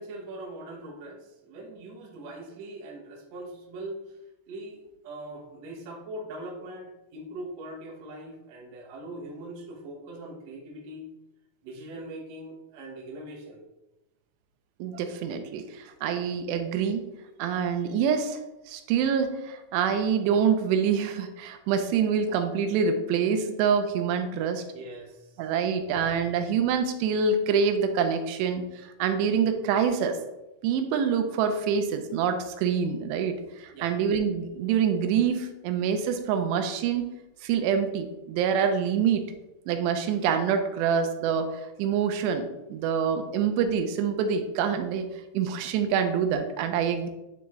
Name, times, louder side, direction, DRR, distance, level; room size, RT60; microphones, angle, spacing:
voice 1, 0.0-4.2 4.5-11.1 11.6-13.7 24.7-25.4 33.7-34.0, right 1 dB, 70° right, -2 dB, 1.7 m, -41 dB
voice 2, 14.8-17.0 17.4-18.4 18.7-24.6 25.4-30.2 30.6-37.1 37.4-39.2 39.7-45.1 45.3-47.1, right 7 dB, 85° right, 7 dB, 2.9 m, -26 dB
10.0 x 3.4 x 3.1 m, 0.97 s
omnidirectional pair, 4.9 m